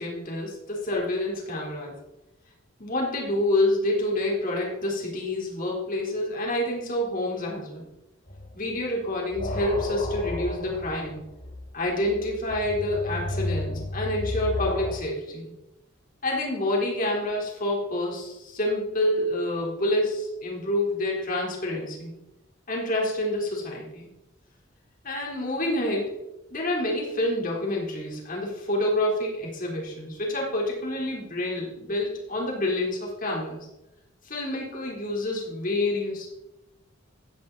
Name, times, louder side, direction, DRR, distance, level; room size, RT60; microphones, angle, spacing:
voice 1, 0.0-1.9 2.8-7.9 8.5-11.2 11.7-15.5 16.2-22.1 22.7-24.1 25.0-26.1 26.5-33.7 34.2-36.3, left 1 dB, 45° left, -2 dB, 4.0 m, -28 dB
sound 1, 8.3-8.7 9.0-14.9, left 1 dB, 80° left, 4.8 m, -33 dB
15.5 x 10.5 x 4.2 m, 0.91 s
head